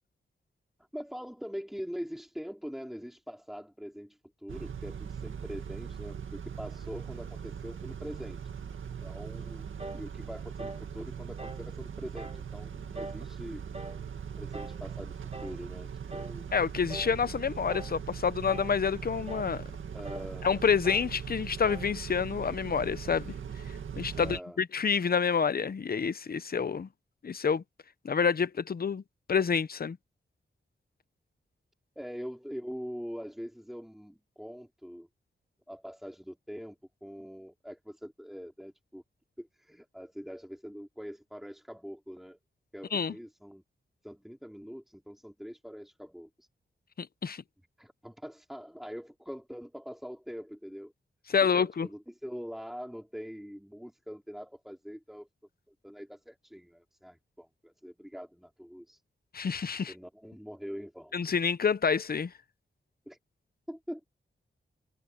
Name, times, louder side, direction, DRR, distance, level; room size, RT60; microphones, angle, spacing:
voice 1, 0.9-8.4 9.0-13.6 14.4-16.5 19.9-20.5 24.1-24.6 31.9-35.1 35.7-36.8 37.0-39.0 39.4-42.4 42.7-43.6 44.0-46.5 47.8-50.9 51.4-55.3 55.8-59.0 59.9-61.2 63.1-63.2 63.7-64.0, equal, ahead, 4.7 m, -43 dB
Car / Idling / Accelerating revving vroom, 4.5-24.4, right 7 dB, 90° right, 2.0 m, -40 dB
sound 1, 9.8-10.1 10.6-10.9 11.4-11.7 12.2-12.4 12.9-13.3 13.7-14.0 14.5-14.8 15.3-15.6 16.1-16.4 16.9-17.2 17.7-18.0 18.5-18.8 19.3-19.5 20.0-20.3 20.8-21.1 21.6-21.9, right 2 dB, 30° right, 1.8 m, -43 dB
voice 2, 16.5-19.6 20.4-23.3 24.0-26.9 27.2-27.6 28.0-29.0 29.3-30.0 42.9-43.1 47.0-47.4 51.3-51.9 59.3-59.9 61.1-62.3, left 6 dB, 50° left, 0.8 m, -28 dB
wide cardioid pair, 80°, 20 cm